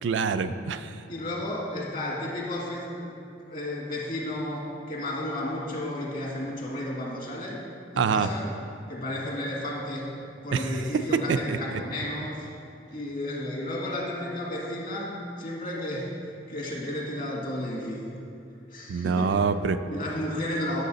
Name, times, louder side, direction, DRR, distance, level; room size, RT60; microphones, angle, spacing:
voice 1, 0.0-1.0 8.0-8.3 10.5-10.7 11.3-11.6 18.9-19.8, right 5 dB, 80° right, 10 dB, 0.4 m, -25 dB
voice 2, 1.1-3.1 3.5-7.6 7.9-8.5 8.9-10.2 10.4-12.5 12.9-18.0 18.7-19.4 19.9-20.8, left 1 dB, 50° left, -3 dB, 1.7 m, -33 dB
9.2 x 6.5 x 4.1 m, 2.6 s
head